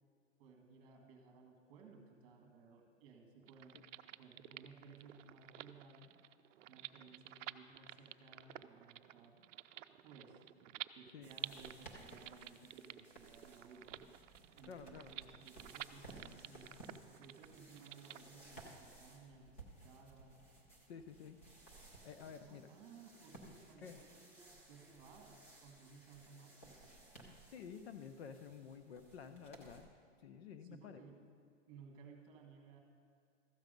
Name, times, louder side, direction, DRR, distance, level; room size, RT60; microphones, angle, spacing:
voice 1, 0.4-3.8 4.2-6.1 6.7-9.4 10.0-10.4 10.9-14.1 14.6-16.8 17.2-20.4 22.4-26.8 30.6-31.2 31.7-32.8, right 4 dB, 30° right, 1 dB, 1.6 m, -59 dB
sound 1, 3.4-18.2, right 13 dB, 80° right, 0.5 m, -52 dB
sound 2, 11.2-29.8, right 2 dB, 10° left, 0.4 m, -59 dB
voice 2, 14.7-15.1 20.9-21.4 22.0-22.7 23.8-24.0 27.5-29.9 30.2-31.0, left 7 dB, 60° left, 11 dB, 0.7 m, -51 dB
13.5 x 8.1 x 5.2 m, 2.3 s
hypercardioid pair, 170°, 36 cm